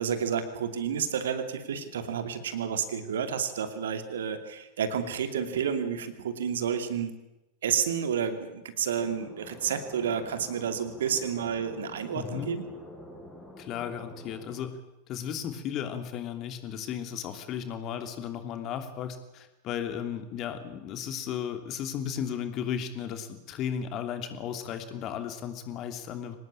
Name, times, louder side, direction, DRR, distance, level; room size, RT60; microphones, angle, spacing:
voice 1, 0.0-7.2 7.6-12.6, right 7 dB, 60° right, 9 dB, 2.6 m, -30 dB
sound 1, 9.0-14.6, left 1 dB, 5° left, 7.9 m, -47 dB
voice 2, 12.1-12.5 13.6-14.8 15.1-26.4, left 8 dB, 35° left, 7 dB, 2.9 m, -35 dB
25.0 x 19.0 x 8.7 m, 0.93 s
figure-of-eight pair, 90°, 0 cm